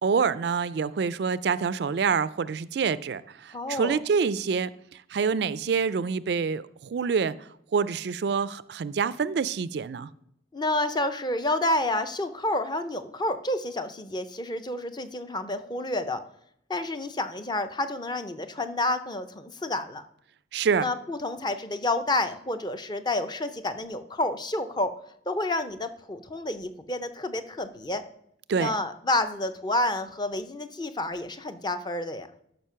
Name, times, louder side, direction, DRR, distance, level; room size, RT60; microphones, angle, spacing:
voice 1, 0.0-10.1 20.5-20.9 28.5-28.7, right 5 dB, 60° right, 0.3 m, -27 dB
voice 2, 3.5-4.0 10.5-16.2 16.7-20.1 20.8-24.9 25.3-28.0 28.5-32.3, left 2 dB, 20° left, 0.6 m, -29 dB
12.0 x 5.2 x 5.6 m
head